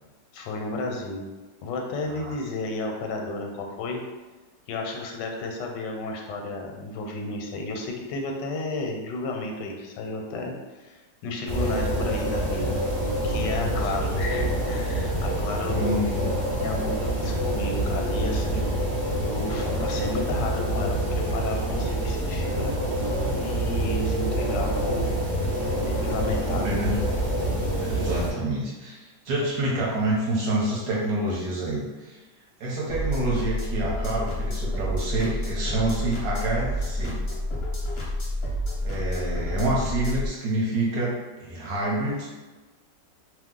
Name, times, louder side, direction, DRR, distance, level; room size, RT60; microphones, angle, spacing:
voice 1, 0.3-1.3 1.6-4.0 4.7-12.8 13.2-16.1 16.6-18.7 19.2-22.7 23.3-25.2 25.7-26.9, left 2 dB, 85° left, 1 dB, 1.2 m, -32 dB
sound 1, 11.5-28.3, right 1 dB, 25° right, 0.7 m, -26 dB
voice 2, 13.6-14.0 15.6-16.4 26.4-27.0 27.8-32.2 32.6-37.2 37.9-38.1 38.8-41.1 41.4-42.3, right 1 dB, 65° right, -4 dB, 1.1 m, -28 dB
sound 2, 32.9-40.3, left 1 dB, 60° left, 0.6 m, -29 dB
2.8 x 2.0 x 3.6 m, 1.2 s
omnidirectional pair, 1.9 m